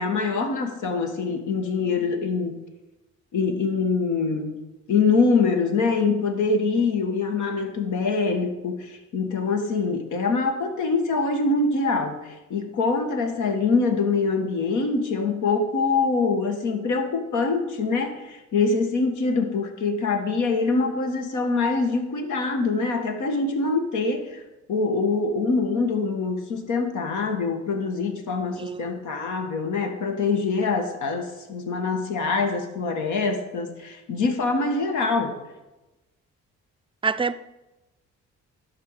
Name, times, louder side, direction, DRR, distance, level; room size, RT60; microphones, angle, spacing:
voice 1, 0.0-2.6 3.3-4.6 4.9-24.4 24.7-35.4, left 4 dB, 75° left, 1.7 m, -24 dB
voice 2, 28.5-28.9 37.0-37.4, right 5 dB, 15° right, 0.5 m, -26 dB
12.0 x 4.8 x 7.4 m
cardioid pair, 90°, 30 cm